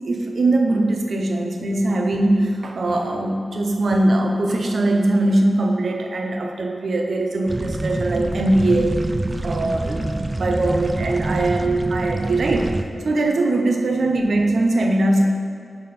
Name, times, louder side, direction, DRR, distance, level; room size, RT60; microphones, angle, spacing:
voice 1, 0.0-9.0 9.4-10.0 10.3-12.7 13.0-15.3, right 2 dB, 70° right, 3 dB, 0.7 m, -21 dB
sound 1, 7.5-12.8, right 2 dB, 30° right, 0.4 m, -26 dB
10.5 x 3.8 x 4.2 m, 2.3 s
wide cardioid pair, 90°, 0 cm